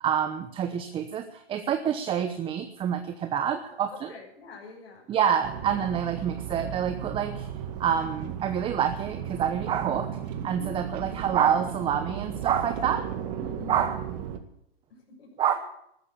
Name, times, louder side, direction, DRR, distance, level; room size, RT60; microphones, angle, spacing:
voice 1, 0.0-4.2 5.1-7.5 7.8-10.1 10.4-13.1 13.7-14.1 15.4-15.5, right 8 dB, 15° right, 8 dB, 0.9 m, -27 dB
voice 2, 4.1-5.3 10.5-10.7 13.3-13.9 15.1-15.3, left 3 dB, 80° left, -5 dB, 7.5 m, -44 dB
sound 1, 5.4-14.4, right 9 dB, 40° right, 2.1 m, -35 dB
14.0 x 13.5 x 7.3 m, 0.75 s
hypercardioid pair, 140°, 32 cm